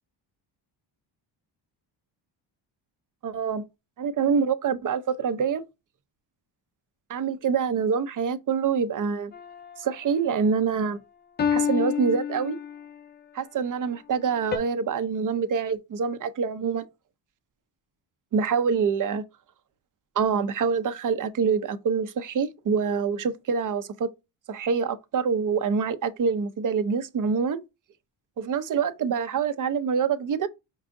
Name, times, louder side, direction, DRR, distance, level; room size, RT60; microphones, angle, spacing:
voice 1, 3.2-3.6 4.0-5.6 7.1-9.3 9.8-11.0 11.5-12.6 13.3-16.9 18.3-19.2 20.2-24.1 24.5-27.6 28.4-30.5, right 6 dB, 40° right, 0.6 m, -26 dB
sound 1, 9.3-10.0 11.4-13.0 14.5-14.6, left 8 dB, 25° left, 0.4 m, -28 dB
5.5 x 2.6 x 3.6 m
cardioid pair, 110°, 47 cm